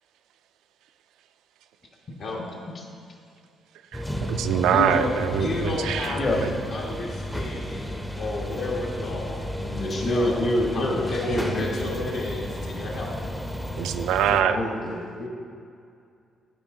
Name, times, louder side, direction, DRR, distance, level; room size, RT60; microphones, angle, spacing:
sound 1, 3.9-14.4, equal, 5° left, 0.5 m, -33 dB
voice 1, 3.9-6.5 13.8-14.6, right 9 dB, 85° right, 10 dB, 0.3 m, -24 dB
voice 2, 4.6-9.4 9.8-10.5 10.7-13.1, left 2 dB, 70° left, -2 dB, 1.7 m, -32 dB
voice 3, 6.2-6.5 8.9-9.2 9.6-11.7 14.2-15.3, left 1 dB, 45° left, 1 dB, 1.2 m, -27 dB
9.2 x 4.7 x 3.8 m, 2.3 s
cardioid pair, 90°, 0 cm